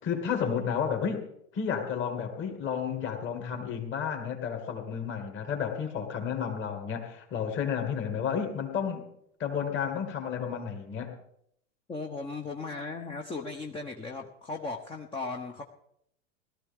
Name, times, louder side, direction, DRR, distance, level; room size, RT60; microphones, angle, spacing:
voice 1, 0.0-1.3 1.5-9.1 9.4-11.1, left 7 dB, 30° left, 4 dB, 2.6 m, -32 dB
voice 2, 11.9-15.6, left 3 dB, 10° left, 3 dB, 1.0 m, -37 dB
18.0 x 13.0 x 3.6 m, 0.73 s
hypercardioid pair, 105°, 41 cm